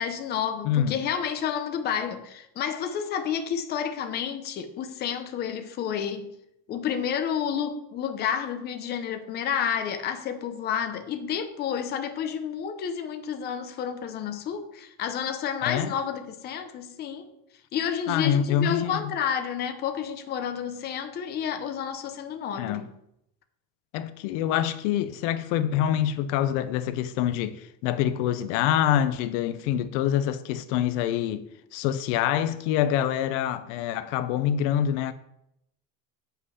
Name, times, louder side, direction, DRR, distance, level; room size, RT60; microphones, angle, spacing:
voice 1, 0.0-6.3 6.7-17.3 17.7-22.8, left 8 dB, 30° left, 0.7 m, -30 dB
voice 2, 0.6-1.0 15.6-15.9 18.1-19.1 22.6-22.9 23.9-35.1, left 10 dB, 85° left, 0.7 m, -26 dB
8.3 x 5.8 x 5.6 m
cardioid pair, 180°, 35 cm